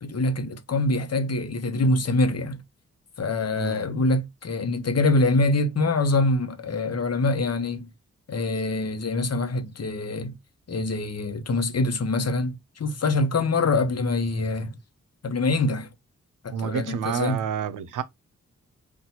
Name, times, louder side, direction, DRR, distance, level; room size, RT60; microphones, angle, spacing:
voice 1, 0.0-2.6 3.2-7.9 8.3-10.3 10.7-14.7 15.2-15.9 16.4-17.4, left 2 dB, 55° left, 0.9 m, -24 dB
voice 2, 16.5-18.0, right 8 dB, 90° right, 0.6 m, -29 dB
4.1 x 2.5 x 2.8 m
cardioid pair, 50°, 30 cm